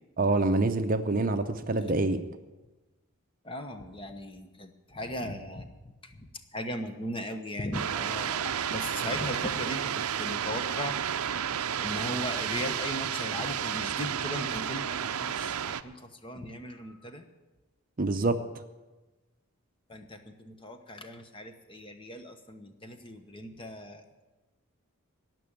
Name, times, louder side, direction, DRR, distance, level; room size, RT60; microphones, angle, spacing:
voice 1, 0.2-2.2 18.0-18.4, right 2 dB, 40° right, 8 dB, 0.6 m, -26 dB
voice 2, 3.4-11.0 11.5-17.2 19.9-24.2, left 1 dB, 25° left, 7 dB, 1.0 m, -38 dB
sound 1, 7.7-15.8, right 8 dB, 80° right, 0.5 m, -32 dB
18.0 x 6.1 x 8.8 m, 1.1 s
head